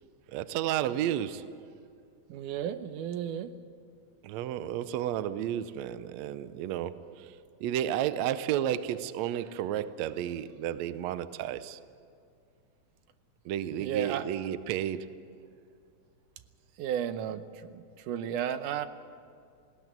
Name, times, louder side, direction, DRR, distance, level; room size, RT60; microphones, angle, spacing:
voice 1, 0.3-1.8 4.2-11.8 13.5-15.4, right 11 dB, 75° right, 1.8 m, -32 dB
voice 2, 2.3-3.5 13.8-14.3 16.8-18.9, right 9 dB, 90° right, 2.4 m, -33 dB
19.5 x 17.0 x 9.1 m
omnidirectional pair, 3.5 m